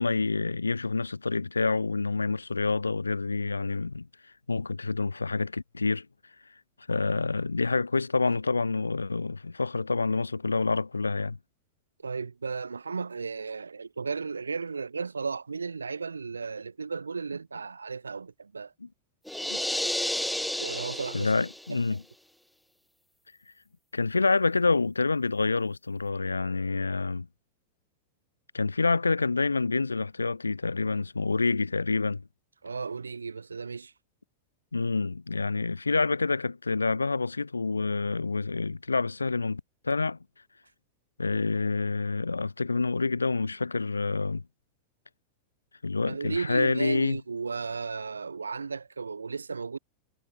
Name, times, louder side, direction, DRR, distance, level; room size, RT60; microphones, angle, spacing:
voice 1, 0.0-4.1 4.5-6.1 6.9-11.4 19.5-19.6 21.1-22.0 23.9-27.3 28.5-32.2 34.7-40.2 41.2-44.4 45.8-47.2, left 3 dB, 80° left, 0.4 m, -27 dB
voice 2, 12.0-18.7 20.6-21.3 21.7-22.0 32.6-33.9 46.1-49.8, right 5 dB, 75° right, 0.6 m, -34 dB
sound 1, 19.3-21.8, left 1 dB, ahead, 1.3 m, -31 dB
figure-of-eight pair, 90°, 0 cm